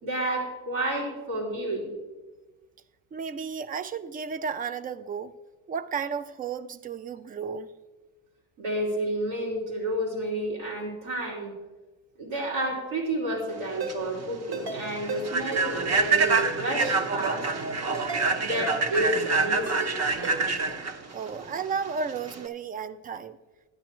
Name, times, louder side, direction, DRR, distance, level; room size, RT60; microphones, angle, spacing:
voice 1, 0.0-1.9 8.6-11.5 12.2-17.5 18.4-19.9 20.4-20.5, right 1 dB, 90° right, -5 dB, 3.6 m, -30 dB
voice 2, 3.1-5.3 5.7-7.7 21.1-23.4, right 6 dB, 25° right, 15 dB, 0.3 m, -33 dB
Human voice / Train, 13.6-22.5, right 4 dB, 40° right, 1.0 m, -27 dB
Ringtone, 13.8-13.9 14.5-14.8 15.1-15.2 15.5-15.7 16.2-16.5 16.8-16.9 17.2-17.4 17.9-18.2 18.5-18.7 18.9-19.1 19.7-19.9 20.2-20.4, right 4 dB, 65° right, 1.9 m, -34 dB
12.0 x 9.9 x 3.0 m, 1.2 s
cardioid pair, 100°, 41 cm